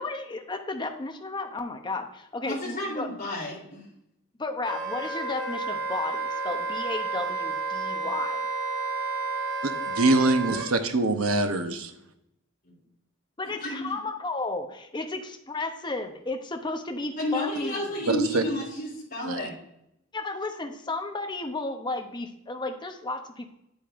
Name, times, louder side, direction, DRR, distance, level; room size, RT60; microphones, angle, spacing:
voice 1, 0.0-3.1 4.4-8.5 13.4-17.9 20.1-23.5, left 3 dB, 20° left, 5 dB, 0.7 m, -33 dB
voice 2, 2.4-3.8 12.6-12.7 13.6-13.9 17.2-19.5, left 1 dB, 45° left, -3 dB, 3.2 m, -31 dB
Wind instrument woodwind instrument, 4.6-10.7, right 3 dB, 60° right, 2.7 m, -31 dB
voice 3, 9.9-11.9 18.1-18.4 19.3-19.4, right 2 dB, 80° right, 7 dB, 0.9 m, -24 dB
8.5 x 8.2 x 2.5 m, 0.80 s
head